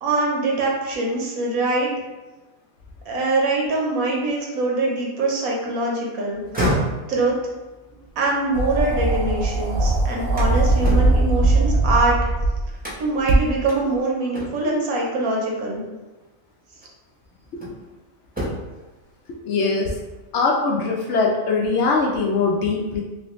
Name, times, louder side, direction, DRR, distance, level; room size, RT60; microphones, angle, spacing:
voice 1, 0.0-1.9 3.1-6.4 7.1-7.3 8.2-12.2 13.0-15.8, right 2 dB, 85° right, -2 dB, 1.3 m, -23 dB
sound 1, 6.3-9.5 9.9-12.2 12.8-13.3 13.7-13.8 14.3-14.9 16.1-16.2 16.8-17.9 18.3-18.9, equal, 10° right, 0.6 m, -30 dB
sound 2, 8.5-12.7 13.3-13.4, right 2 dB, 60° right, 0.8 m, -20 dB
voice 2, 19.3-19.9 20.3-23.0, left 4 dB, 65° left, -1 dB, 0.7 m, -21 dB
3.0 x 2.8 x 3.0 m, 1.1 s
omnidirectional pair, 1.4 m